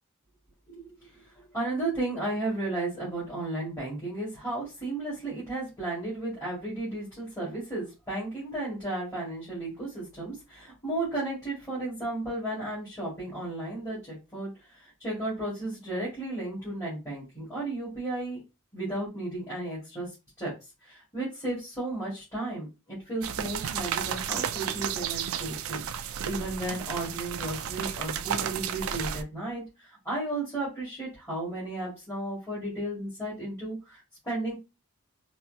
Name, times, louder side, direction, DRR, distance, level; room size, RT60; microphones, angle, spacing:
voice 1, 1.5-18.4 18.7-20.1 20.4-20.5 20.8-34.5, right 2 dB, 15° left, -9 dB, 2.0 m, -34 dB
sound 1, 23.2-29.2, right 8 dB, 75° right, 0.4 m, -32 dB
4.3 x 2.7 x 2.7 m, 0.27 s
head